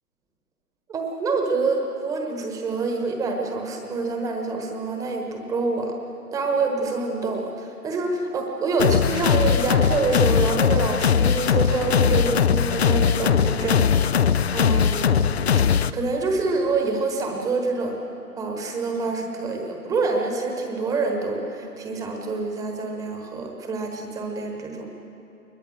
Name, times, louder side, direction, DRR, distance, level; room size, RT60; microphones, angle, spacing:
voice 1, 0.9-6.0 6.3-14.2 14.5-15.4 15.7-18.0 18.4-24.9, right 3 dB, 5° right, 3 dB, 1.2 m, -26 dB
sound 1, 8.8-15.9, left 7 dB, 45° left, 0.5 m, -20 dB
21.0 x 21.0 x 6.4 m, 2.9 s
hypercardioid pair, 150°, 45 cm